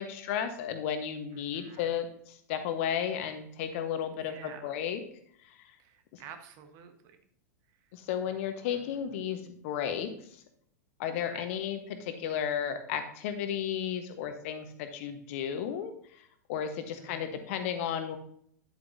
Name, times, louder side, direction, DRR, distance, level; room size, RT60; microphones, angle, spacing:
voice 1, 0.0-5.0 7.9-10.1 11.0-15.9 16.5-18.2, left 8 dB, 50° left, 8 dB, 1.2 m, -33 dB
voice 2, 1.3-1.9 4.2-4.7 5.8-7.2 8.3-8.4 8.7-8.9 11.3-11.5 16.9-17.4, right 7 dB, 40° right, 7 dB, 1.3 m, -50 dB
10.0 x 7.9 x 2.7 m, 0.64 s
figure-of-eight pair, 90°, 9 cm